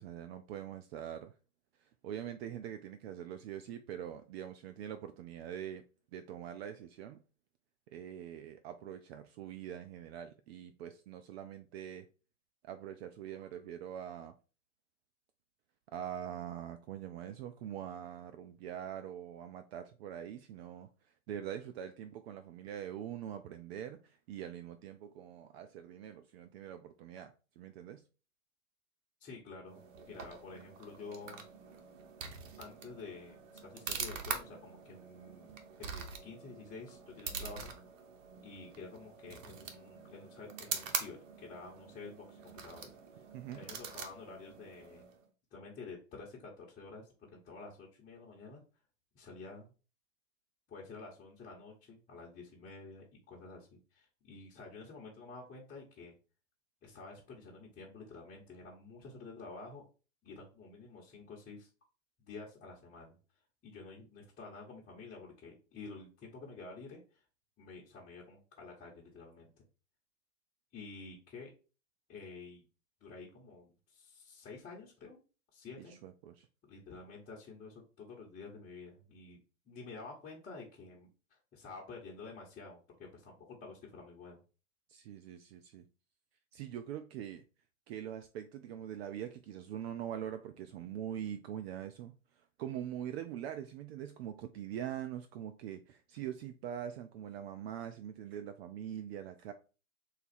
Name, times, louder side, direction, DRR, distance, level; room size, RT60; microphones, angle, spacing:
voice 1, 0.0-1.3 2.0-5.8 6.1-7.2 7.9-12.1 12.6-14.3 15.9-20.9 21.3-28.0 43.3-43.7 75.9-76.5 84.9-85.8 86.5-87.4 87.9-92.1 92.6-99.5, right 10 dB, 50° right, 0.4 m, -43 dB
voice 2, 29.2-31.4 32.6-35.5 35.8-37.7 38.4-42.9 43.5-45.0 45.5-48.6 49.1-49.7 50.7-56.1 56.8-59.8 60.2-61.7 62.2-63.2 63.6-67.2 67.6-69.5 70.7-71.5 72.1-72.7 73.0-75.2 75.5-76.0 76.7-79.4 79.7-84.4, left 4 dB, 20° left, 1.0 m, -50 dB
sound 1, 29.7-45.2, right 6 dB, 70° right, 0.9 m, -44 dB
4.0 x 2.4 x 4.1 m
hypercardioid pair, 120°, 39 cm